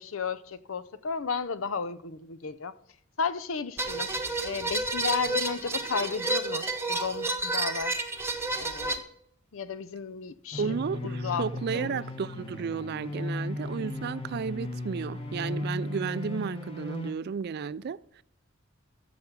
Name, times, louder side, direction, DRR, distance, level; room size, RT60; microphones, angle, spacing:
voice 1, 0.0-2.7 3.2-4.1 4.4-8.0 8.6-9.0 9.5-10.7 11.0-11.4 11.7-12.0, left 5 dB, 80° left, 0.7 m, -33 dB
sound 1, 3.8-9.0, right 2 dB, 10° right, 1.0 m, -30 dB
sound 2, 10.5-17.1, left 2 dB, 30° left, 1.2 m, -36 dB
voice 2, 10.6-18.2, right 6 dB, 50° right, 0.3 m, -33 dB
15.0 x 5.9 x 5.3 m
head